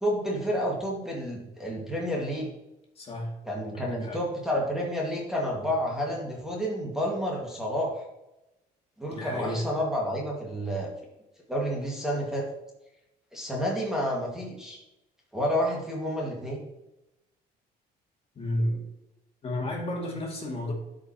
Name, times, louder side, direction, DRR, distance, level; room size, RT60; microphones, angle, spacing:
voice 1, 0.0-2.5 3.5-8.1 9.0-10.9 11.5-12.5 13.3-14.8 15.3-16.6, equal, 5° right, -2 dB, 1.8 m, -30 dB
voice 2, 3.0-3.4 3.7-4.2 9.1-9.7 18.3-18.8 19.4-20.7, left 1 dB, 35° left, 0 dB, 2.3 m, -32 dB
12.0 x 5.1 x 2.9 m, 0.93 s
cardioid pair, 110°, 17 cm